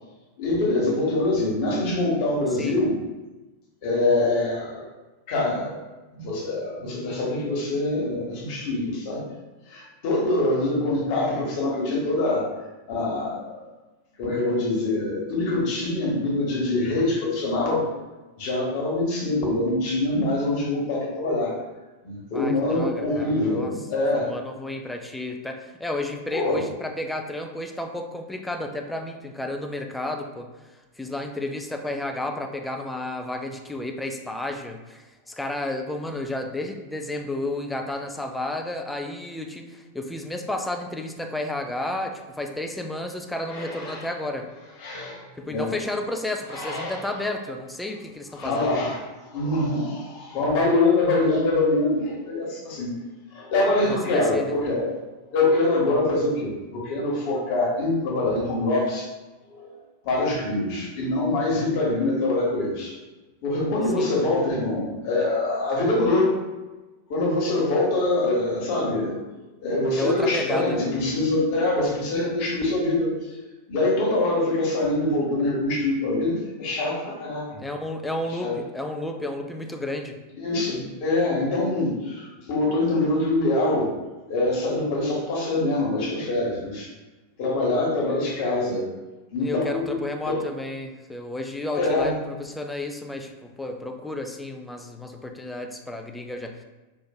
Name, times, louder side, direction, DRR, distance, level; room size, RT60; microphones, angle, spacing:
voice 1, 0.4-2.9 3.8-4.9 5.3-5.8 6.1-9.3 9.7-12.5 12.9-13.6 14.2-17.8 18.4-21.5 22.0-24.3 26.3-26.6 43.5-44.1 44.8-45.2 45.5-45.7 46.5-47.2 48.4-52.9 53.3-55.0 55.3-59.1 59.5-59.7 60.0-63.0 63.4-66.4 67.1-69.2 69.6-73.1 73.7-77.6 78.4-78.5 80.4-83.9 84.3-86.9 87.4-88.9 89.3-90.4 91.7-92.2, left 2 dB, 45° left, -3 dB, 1.0 m, -24 dB
voice 2, 22.3-23.7 24.2-30.5 31.0-44.5 45.4-48.7 53.9-54.5 63.9-64.1 70.0-70.8 77.6-80.2 89.4-96.6, left 1 dB, 5° left, 4 dB, 0.3 m, -32 dB
4.3 x 2.5 x 2.2 m, 1.1 s
figure-of-eight pair, 90°, 0 cm